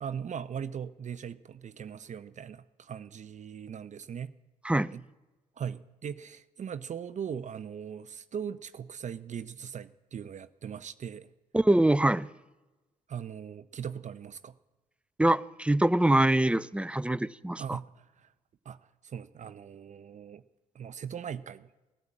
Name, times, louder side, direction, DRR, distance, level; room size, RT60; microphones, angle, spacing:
voice 1, 0.0-4.3 4.9-5.0 5.6-11.3 13.1-14.5 17.6-18.3 18.6-18.8 19.0-20.4 20.7-21.7, right 8 dB, 50° right, 13 dB, 0.6 m, -39 dB
voice 2, 11.5-12.3 15.2-17.8, right 1 dB, 5° right, 16 dB, 0.6 m, -24 dB
17.5 x 9.6 x 8.6 m, 1.1 s
hypercardioid pair, 45°, 16 cm